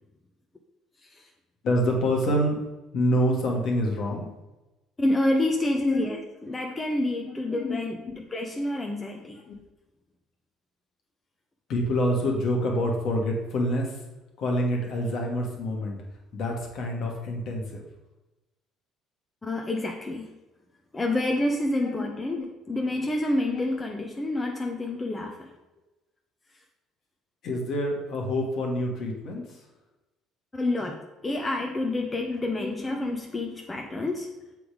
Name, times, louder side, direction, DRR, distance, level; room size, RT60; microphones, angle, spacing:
voice 1, 1.6-2.6 2.9-4.3 5.8-6.1 7.5-8.2 9.5-9.6 11.7-13.9 14.4-16.0 16.3-17.8 21.8-22.1 22.4-22.5 23.5-23.8 24.3-24.4 27.4-29.4 32.6-33.2, equal, 60° left, 0 dB, 1.6 m, -27 dB
voice 2, 5.0-9.4 19.4-20.3 20.9-22.4 22.7-25.5 30.5-34.3, left 1 dB, 20° left, 2 dB, 0.8 m, -28 dB
6.9 x 3.5 x 4.9 m, 1.0 s
hypercardioid pair, 60°, 0 cm